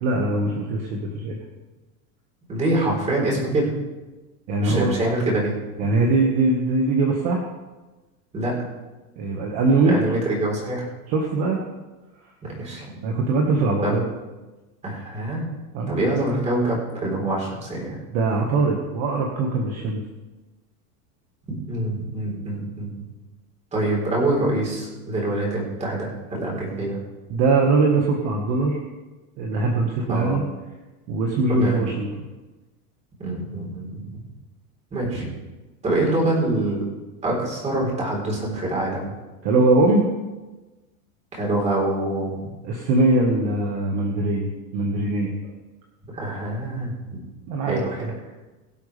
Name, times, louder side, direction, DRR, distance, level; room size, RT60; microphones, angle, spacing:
voice 1, 0.0-1.4 4.5-4.9 5.8-7.4 9.2-10.0 11.1-11.6 13.0-14.0 15.7-16.0 18.1-20.0 27.3-28.8 29.4-30.4 31.1-32.1 39.4-40.1 42.6-45.3 47.5-48.1, right 3 dB, 35° right, 0 dB, 1.8 m, -21 dB
voice 2, 2.5-3.7 4.6-5.5 8.3-8.5 9.8-10.9 12.4-12.8 13.8-14.0 14.8-15.4 15.9-18.0 21.5-22.9 23.7-27.0 30.1-30.4 31.5-31.8 33.2-34.1 34.9-35.3 35.8-36.9 37.2-39.2 41.3-42.4 46.1-46.9 47.6-48.1, right 1 dB, 15° right, -3 dB, 4.3 m, -25 dB
23.5 x 8.3 x 3.5 m, 1.1 s
supercardioid pair, 165°, 46 cm